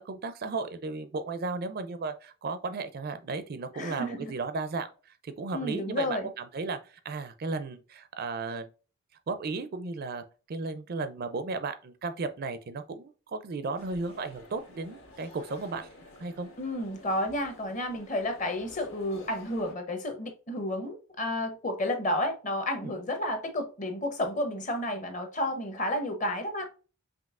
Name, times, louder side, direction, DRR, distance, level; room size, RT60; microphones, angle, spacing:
voice 1, 0.0-4.9 5.2-8.7 9.3-15.9 16.2-16.5, right 3 dB, 45° right, 0.4 m, -35 dB
voice 2, 3.7-4.3 5.5-6.3 16.6-26.7, left 1 dB, 35° left, 0.8 m, -31 dB
sound 1, 13.8-19.7, left 1 dB, 65° left, 1.4 m, -51 dB
5.1 x 3.0 x 2.4 m
head